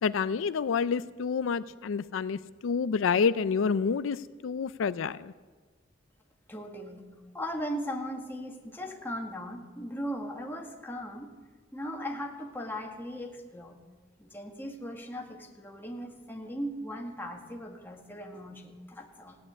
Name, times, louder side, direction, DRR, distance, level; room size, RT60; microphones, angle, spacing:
voice 1, 0.0-5.3, left 5 dB, 80° left, 15 dB, 0.4 m, -28 dB
voice 2, 6.5-7.0 7.3-11.3 11.7-13.8 14.2-19.4, equal, 10° left, 1 dB, 1.7 m, -38 dB
16.0 x 8.6 x 9.9 m, 1.5 s
head